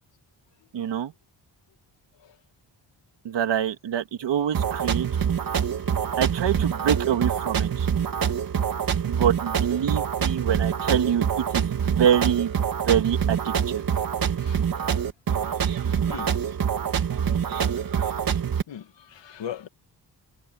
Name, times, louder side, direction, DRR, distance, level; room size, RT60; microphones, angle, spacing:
voice 1, 0.7-1.1 3.2-5.1 6.2-7.9 9.0-12.5 12.9-13.8, right 9 dB, 80° right, 2.2 m, -25 dB
sound 1, 4.5-18.6, right 7 dB, 50° right, 2.1 m, -25 dB
voice 2, 18.7-19.7, left 9 dB, 85° left, 2.2 m, -39 dB
wide cardioid pair, 145°, 42 cm